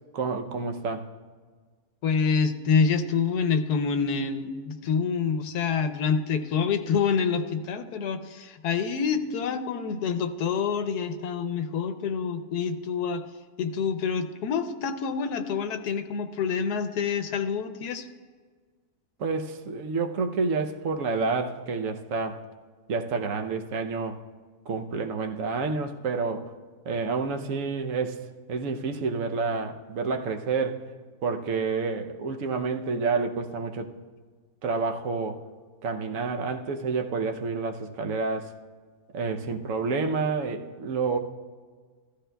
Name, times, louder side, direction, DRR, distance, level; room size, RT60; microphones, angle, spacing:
voice 1, 0.1-1.1 19.2-22.4 22.9-24.2 24.7-26.5 26.8-28.2 28.5-30.8 31.2-34.0 34.6-35.4 35.8-38.5 39.1-41.2, right 4 dB, 60° right, 1.0 m, -29 dB
voice 2, 2.0-13.2 13.6-18.1, left 6 dB, 85° left, 1.2 m, -27 dB
15.0 x 13.0 x 2.2 m
omnidirectional pair, 1.6 m